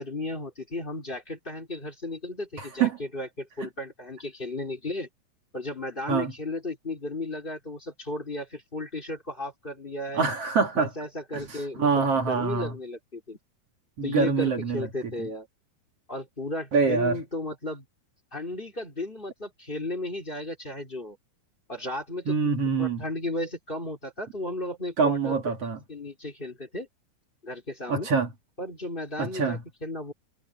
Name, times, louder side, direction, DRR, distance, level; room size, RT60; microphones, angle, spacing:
voice 1, 0.0-5.1 5.5-10.2 10.8-13.4 14.0-15.5 16.1-17.8 18.3-21.2 21.7-22.4 22.8-25.4 25.9-26.9 27.4-28.1 28.6-30.1, left 2 dB, 15° left, 2.6 m, -34 dB
voice 2, 2.6-3.0 3.6-3.7 6.1-6.3 10.1-10.9 11.3-12.8 14.0-14.9 15.2-15.3 16.7-17.2 22.3-23.0 25.0-25.8 27.9-28.3 29.2-29.6, right 5 dB, 40° right, 3.1 m, -25 dB
omnidirectional pair, 4.4 m